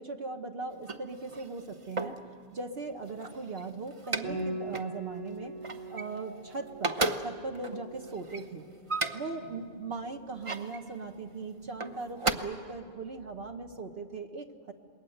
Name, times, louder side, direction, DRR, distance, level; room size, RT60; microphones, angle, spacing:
voice 1, 0.0-2.2 2.5-5.6 5.9-8.7 9.1-14.7, right 3 dB, 50° right, 4 dB, 1.3 m, -39 dB
sound 1, 0.7-2.3 2.9-4.4 4.7-5.0 5.3-6.4 6.7-9.4 10.1-10.8 11.7-12.3, right 2 dB, 30° right, 0.8 m, -35 dB
Piano, 4.2-13.6, right 1 dB, 85° right, 4.2 m, -44 dB
27.5 x 21.0 x 7.9 m, 2.2 s
omnidirectional pair, 1.3 m